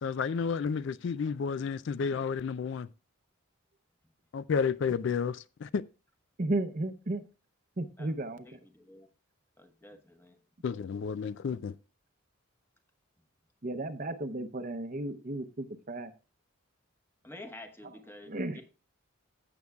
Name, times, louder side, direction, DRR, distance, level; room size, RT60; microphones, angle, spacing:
voice 1, 0.0-2.9 4.3-5.8 10.6-11.7, left 6 dB, 60° left, 0.3 m, -31 dB
voice 2, 6.4-7.2 7.8-8.5 13.6-16.1 18.3-18.6, right 2 dB, 40° right, 0.7 m, -34 dB
voice 3, 8.0-9.1 9.6-10.4 17.2-18.6, left 1 dB, 10° left, 1.0 m, -50 dB
16.0 x 7.0 x 2.3 m
head